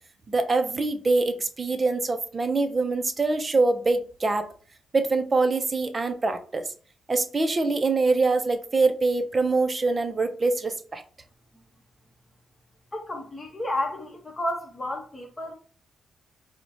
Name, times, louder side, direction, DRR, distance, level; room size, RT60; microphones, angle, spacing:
voice 1, 0.3-4.5 4.9-6.6 7.1-11.0, right 3 dB, 30° right, 0.4 m, -24 dB
voice 2, 12.9-15.5, left 1 dB, 20° left, 0.8 m, -31 dB
4.3 x 2.1 x 2.6 m
cardioid pair, 95°, 0 cm